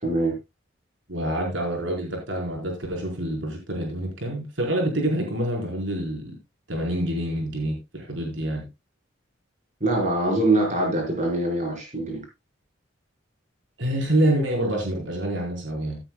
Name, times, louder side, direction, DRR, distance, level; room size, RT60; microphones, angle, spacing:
voice 1, 0.0-0.4 9.8-12.2, right 2 dB, 40° right, 0 dB, 5.0 m, -23 dB
voice 2, 1.1-6.3 6.7-8.7 13.8-16.0, right 1 dB, 70° right, 0 dB, 4.5 m, -27 dB
16.0 x 8.8 x 2.3 m, 0.23 s
head